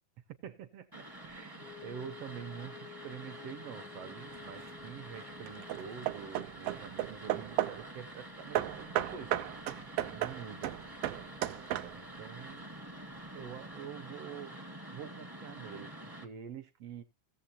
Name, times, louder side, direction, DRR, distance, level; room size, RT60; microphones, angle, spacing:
voice 1, 0.4-9.4 10.1-10.8 11.9-12.8 13.3-14.5 14.9-17.0, right 8 dB, 70° right, 1.6 m, -46 dB
sound 1, 0.9-16.2, right 1 dB, 20° right, 0.5 m, -48 dB
Wind instrument woodwind instrument, 1.6-6.1, left 10 dB, 80° left, 2.1 m, -52 dB
Hammer / Wood, 4.3-4.8 5.5-7.9 8.5-12.2, right 14 dB, 90° right, 1.3 m, -35 dB
17.5 x 7.3 x 2.8 m
omnidirectional pair, 3.5 m